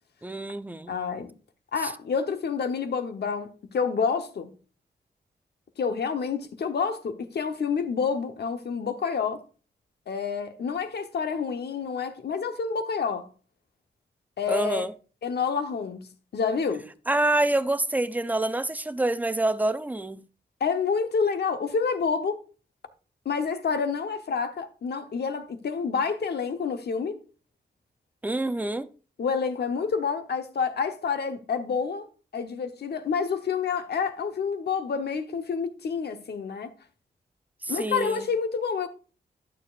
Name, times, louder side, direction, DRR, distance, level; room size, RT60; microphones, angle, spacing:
voice 1, 0.2-1.0 1.8-1.9 14.5-14.9 17.1-20.2 28.2-28.9 37.6-38.3, right 2 dB, 10° right, 0.6 m, -27 dB
voice 2, 0.9-1.3 1.7-4.5 5.8-9.4 10.1-13.3 14.4-14.9 15.2-16.0 16.3-16.9 20.6-22.4 23.2-27.2 29.2-32.1 32.3-36.7 37.7-38.9, left 5 dB, 70° left, 1.0 m, -28 dB
11.5 x 7.0 x 2.5 m
cardioid pair, 60°, 18 cm